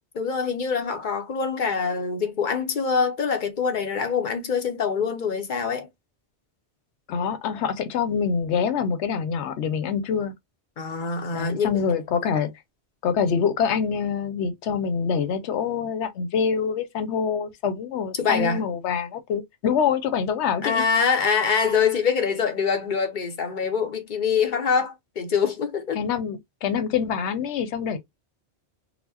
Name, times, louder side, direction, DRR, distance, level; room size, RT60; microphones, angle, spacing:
voice 1, 0.2-5.9 10.8-11.7 18.2-18.6 20.6-26.0, left 6 dB, 50° left, 0.8 m, -24 dB
voice 2, 7.1-10.3 11.3-12.5 13.0-20.8 25.9-28.0, left 6 dB, 85° left, 0.9 m, -25 dB
4.1 x 2.0 x 2.7 m
omnidirectional pair, 1.1 m